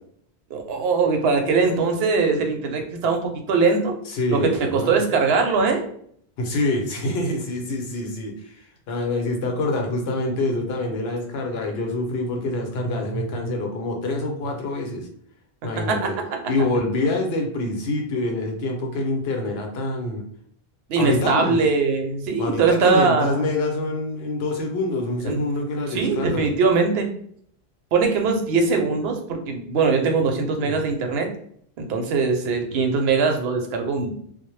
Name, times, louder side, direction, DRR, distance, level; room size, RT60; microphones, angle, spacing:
voice 1, 0.5-3.9 4.3-5.9 15.8-16.2 20.9-23.5 25.3-25.5 25.9-27.1 27.9-31.3 31.8-34.1, right 4 dB, 80° right, 4 dB, 0.8 m, -21 dB
voice 2, 4.1-5.0 6.4-8.6 8.9-15.1 15.6-16.0 16.5-20.2 20.9-21.6 22.4-26.5 30.6-30.8, left 2 dB, 80° left, 3 dB, 0.8 m, -26 dB
2.0 x 2.0 x 3.0 m, 0.63 s
omnidirectional pair, 1.1 m